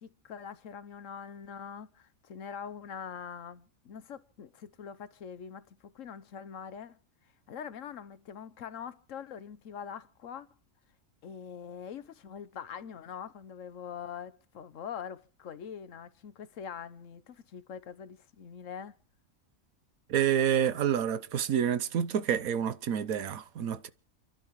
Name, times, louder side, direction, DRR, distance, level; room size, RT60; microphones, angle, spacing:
voice 1, 0.0-7.0 7.5-10.5 11.2-18.9, left 7 dB, 65° left, 1.2 m, -43 dB
voice 2, 20.1-23.9, right 9 dB, 85° right, 1.3 m, -28 dB
29.0 x 11.5 x 3.1 m
omnidirectional pair, 1.4 m